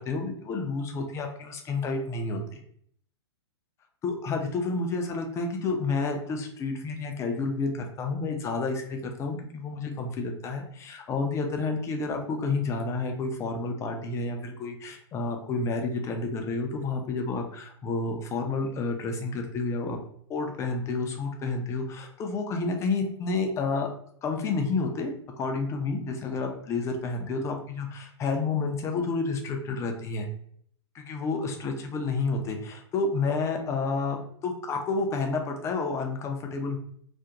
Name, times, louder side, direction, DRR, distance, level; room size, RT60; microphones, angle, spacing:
voice 1, 0.0-2.6 4.0-20.0 20.3-23.9 24.2-30.3 30.9-36.8, left 3 dB, 20° left, 3 dB, 0.4 m, -30 dB
2.4 x 2.1 x 2.7 m, 0.64 s
hypercardioid pair, 120°, 14 cm